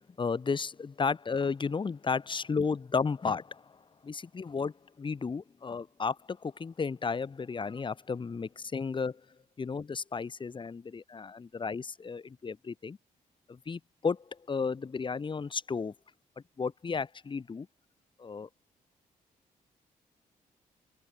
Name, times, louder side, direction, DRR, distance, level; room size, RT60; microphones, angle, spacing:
voice 1, 0.2-3.6 4.0-9.2 9.6-13.0 13.5-15.9 16.6-17.7 18.2-18.5, left 5 dB, 35° left, 0.8 m, -33 dB
cardioid pair, 65°, 15 cm